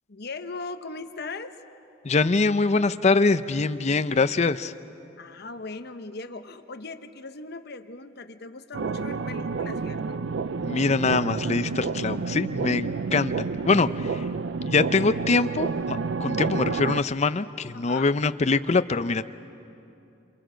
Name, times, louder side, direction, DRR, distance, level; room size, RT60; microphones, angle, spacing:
voice 1, 0.1-1.6 5.2-10.2 17.7-18.1, left 3 dB, 60° left, 8 dB, 1.0 m, -39 dB
voice 2, 2.0-4.7 10.6-14.2 14.6-19.2, left 3 dB, 35° left, 12 dB, 0.6 m, -23 dB
sound 1, 8.7-17.0, right 4 dB, 70° right, 0.5 m, -29 dB
29.5 x 27.0 x 5.1 m, 2.8 s
head